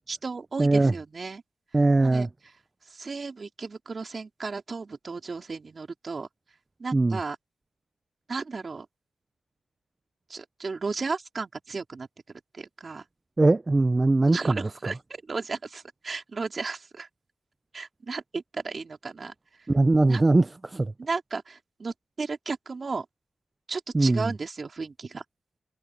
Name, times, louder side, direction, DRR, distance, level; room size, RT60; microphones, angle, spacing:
voice 1, 0.1-1.4 2.0-2.3 2.9-6.3 6.8-7.4 8.3-8.9 10.3-12.1 12.5-13.0 14.3-15.0 15.3-17.1 17.7-19.7 20.1-20.2 21.0-23.1 23.7-25.2, right 4 dB, 45° right, 4.3 m, -34 dB
voice 2, 0.6-0.9 1.7-2.3 6.9-7.2 13.4-14.6 19.7-20.9 23.9-24.3, right 2 dB, 25° right, 0.5 m, -21 dB
cardioid pair, 60°, 0 cm